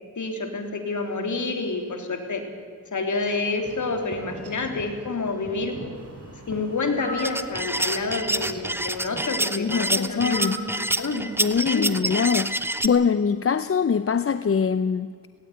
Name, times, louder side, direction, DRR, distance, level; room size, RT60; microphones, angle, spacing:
voice 1, 0.2-2.4 2.9-5.8 6.5-11.3 11.6-12.0, left 3 dB, 55° left, 3.5 m, -28 dB
Wind chime / Wind, 3.1-9.4, right 2 dB, 40° right, 4.8 m, -44 dB
sound 1, 7.0-7.4 10.3-10.7, equal, 15° left, 3.0 m, -34 dB
sound 2, 7.2-12.9, right 1 dB, 5° right, 1.0 m, -27 dB
voice 2, 9.5-10.5 11.4-15.1, left 6 dB, 40° left, 0.7 m, -23 dB
18.0 x 18.0 x 9.5 m
cardioid pair, 85°, 36 cm